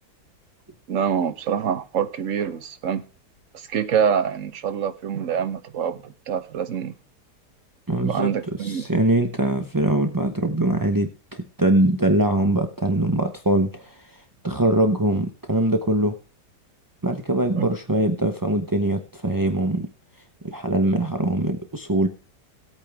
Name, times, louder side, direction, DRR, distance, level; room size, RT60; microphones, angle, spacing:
voice 1, 0.9-3.0 3.5-6.9 8.0-8.8 17.6-17.7, right 7 dB, 50° right, 1.3 m, -25 dB
voice 2, 7.9-8.3 8.6-14.1 14.4-16.1 17.0-19.9 20.4-22.1, right 1 dB, 30° right, 0.4 m, -22 dB
16.0 x 8.8 x 3.4 m
omnidirectional pair, 1.9 m